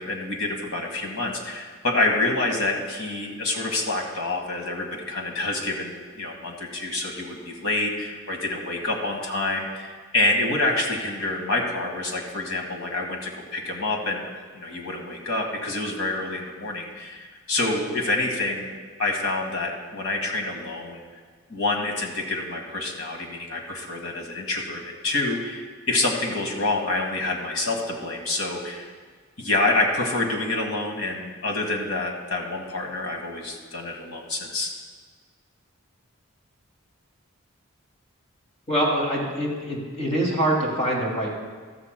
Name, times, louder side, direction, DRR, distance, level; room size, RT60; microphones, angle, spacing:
voice 1, 0.0-14.3 14.5-21.0 21.5-28.9 29.4-34.7, left 2 dB, 75° left, 1 dB, 1.8 m, -27 dB
voice 2, 38.7-41.3, right 1 dB, 30° left, -3 dB, 2.5 m, -24 dB
14.0 x 13.5 x 2.2 m, 1.5 s
head